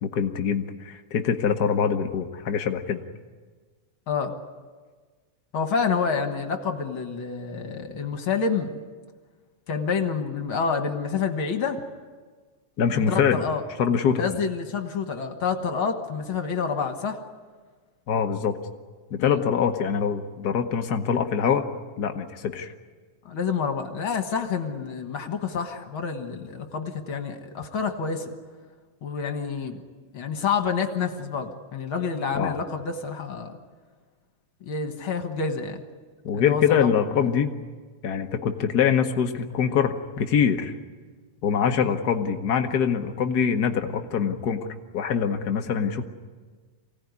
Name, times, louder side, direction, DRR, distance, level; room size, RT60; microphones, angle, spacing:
voice 1, 0.0-3.0 12.8-13.4 13.8-14.2 18.1-18.5 19.1-21.7 22.0-22.7 32.3-32.6 36.2-37.5 38.0-40.7 41.4-44.7 44.9-46.0, left 7 dB, 80° left, 6 dB, 0.8 m, -24 dB
voice 2, 5.5-8.8 9.7-11.8 12.9-13.6 14.2-17.2 19.2-19.4 23.3-28.4 29.0-29.8 30.1-33.6 34.6-35.8 36.4-36.9 41.8-42.0, left 5 dB, 50° left, 6 dB, 2.0 m, -28 dB
24.5 x 17.5 x 9.6 m, 1.5 s
omnidirectional pair, 3.3 m